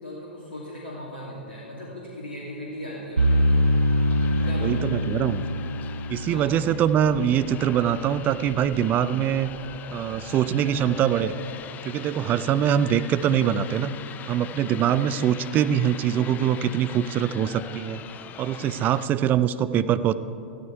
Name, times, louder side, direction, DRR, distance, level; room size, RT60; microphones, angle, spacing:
voice 1, 0.0-3.6 4.4-4.9 6.3-6.6, left 1 dB, 80° left, -6 dB, 2.6 m, -38 dB
sound 1, 3.2-19.1, left 9 dB, 30° left, 0.6 m, -42 dB
sound 2, 3.2-8.3, equal, 85° right, 0.4 m, -24 dB
voice 2, 4.3-5.4 6.1-9.5 9.9-11.3 11.8-13.9 14.3-18.0 18.4-20.1, right 9 dB, 30° right, 14 dB, 0.5 m, -23 dB
14.0 x 13.0 x 4.6 m, 2.6 s
figure-of-eight pair, 95°, 6 cm